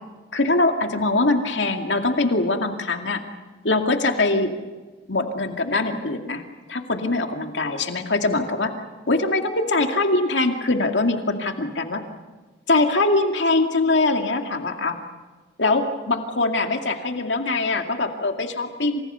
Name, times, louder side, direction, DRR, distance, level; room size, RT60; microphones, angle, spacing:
voice 1, 0.3-3.2 3.6-4.5 5.1-6.4 6.7-8.7 9.1-12.0 12.7-15.0 15.6-19.0, left 2 dB, 85° left, 4 dB, 2.3 m, -22 dB
28.5 x 27.5 x 5.7 m, 1.3 s
head